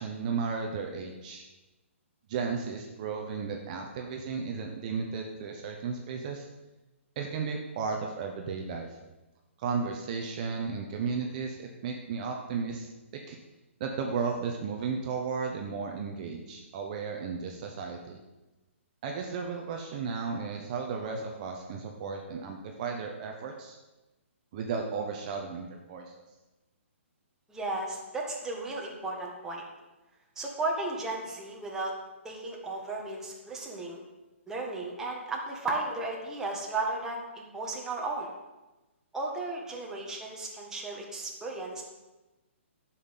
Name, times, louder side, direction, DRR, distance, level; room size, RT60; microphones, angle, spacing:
voice 1, 0.0-1.4 2.3-6.5 7.1-9.0 9.6-13.4 13.8-18.2 19.0-23.8 24.5-26.1, right 5 dB, 35° right, 2 dB, 1.1 m, -34 dB
voice 2, 27.5-29.6 30.4-31.9 32.2-34.0 34.5-38.3 39.1-41.8, right 2 dB, 5° right, -2 dB, 1.7 m, -34 dB
11.0 x 5.9 x 7.4 m, 1.1 s
hypercardioid pair, 155°, 7 cm